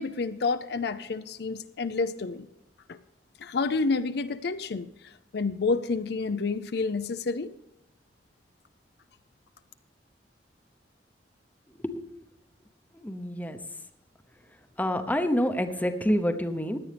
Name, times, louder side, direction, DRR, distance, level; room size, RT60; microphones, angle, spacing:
voice 1, 0.0-2.5 2.9-3.0 3.4-7.5, left 4 dB, 65° left, 11 dB, 0.5 m, -29 dB
voice 2, 12.9-13.6 14.8-16.8, equal, 10° left, 8 dB, 0.8 m, -27 dB
16.5 x 11.0 x 3.4 m, 0.87 s
head